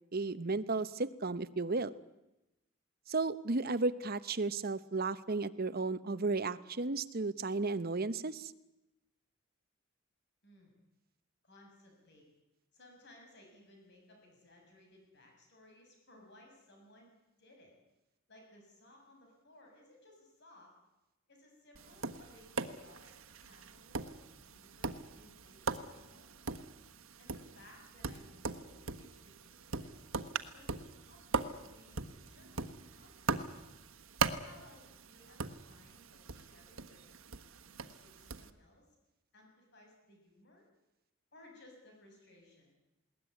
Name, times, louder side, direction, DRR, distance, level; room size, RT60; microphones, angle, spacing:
voice 1, 0.1-1.9 3.1-8.5, right 3 dB, 50° right, 14 dB, 0.9 m, -34 dB
voice 2, 10.4-10.7 11.4-12.3 12.7-17.1 17.4-17.7 18.3-20.7 21.3-23.2 23.4-26.4 27.2-30.1 30.5-33.6 34.4-37.0 37.5-39.0 39.3-40.6 41.3-42.8, left 1 dB, 55° left, 1 dB, 7.0 m, -61 dB
Tap, 21.8-38.5, right 4 dB, 85° right, 1.3 m, -41 dB
20.5 x 19.0 x 9.8 m, 0.95 s
head